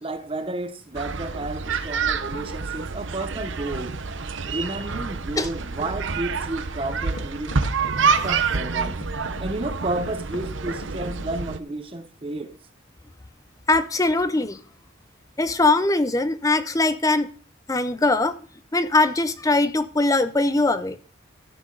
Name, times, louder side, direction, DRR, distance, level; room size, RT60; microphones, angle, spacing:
voice 1, 0.0-4.0 4.5-7.6 8.2-9.0 9.4-12.6, right 2 dB, 25° right, 0.7 m, -31 dB
sound 1, 0.9-11.6, right 5 dB, 65° right, 0.8 m, -27 dB
sound 2, 6.6-6.7 7.0-11.7, left 2 dB, 85° left, 1.6 m, -39 dB
voice 2, 13.7-14.6 15.4-17.3 17.7-18.4 18.7-21.0, left 2 dB, 15° left, 0.5 m, -21 dB
14.0 x 6.4 x 5.2 m
head